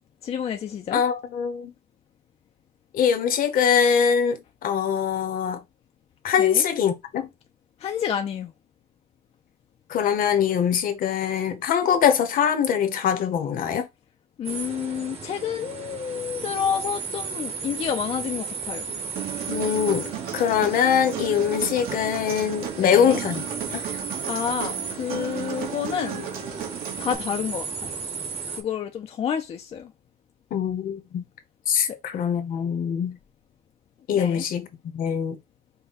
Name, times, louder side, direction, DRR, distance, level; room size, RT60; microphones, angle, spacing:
voice 1, 0.2-1.0 6.4-6.6 7.8-8.5 14.4-18.9 22.8-23.2 24.3-26.2 27.0-28.0 28.5-29.9 31.9-32.0 34.2-34.5, left 8 dB, 35° left, 0.4 m, -29 dB
voice 2, 0.9-1.7 2.9-5.6 6.2-7.3 9.9-13.9 19.5-23.4 23.7-23.8 30.5-31.2 31.7-33.2 34.1-34.7 34.9-35.4, left 8 dB, 60° left, 0.9 m, -23 dB
sound 1, 14.4-28.6, right 5 dB, 35° right, 1.1 m, -35 dB
Human voice, 19.2-27.1, right 9 dB, 65° right, 1.2 m, -34 dB
5.5 x 2.2 x 3.9 m
cardioid pair, 165°, 17 cm